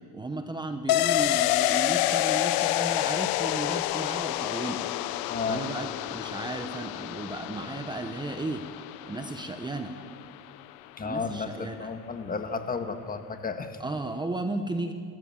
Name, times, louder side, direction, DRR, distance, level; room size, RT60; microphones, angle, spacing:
voice 1, 0.0-4.9 5.5-8.7 9.1-10.0 11.0-11.9 13.8-14.9, right 2 dB, 10° right, 7 dB, 1.0 m, -34 dB
sound 1, 0.9-10.3 10.6-10.7, left 15 dB, 70° left, 0.9 m, -28 dB
voice 2, 5.3-5.6 11.0-13.8, left 4 dB, 25° left, 7 dB, 1.6 m, -33 dB
26.5 x 14.0 x 7.5 m, 2.1 s
cardioid pair, 120°, 37 cm